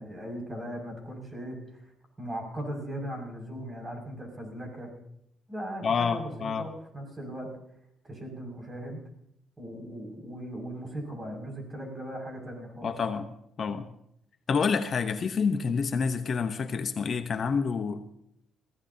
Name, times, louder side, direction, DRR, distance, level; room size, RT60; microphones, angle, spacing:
voice 1, 0.0-1.6 2.2-4.9 5.5-7.5 8.0-9.0 9.6-12.9, right 1 dB, 25° right, 2 dB, 6.4 m, -38 dB
voice 2, 5.8-6.7 12.8-13.3 13.6-13.9 14.5-18.0, left 5 dB, 50° left, 8 dB, 1.0 m, -28 dB
21.5 x 15.5 x 2.9 m, 0.75 s
cardioid pair, 90°, 0 cm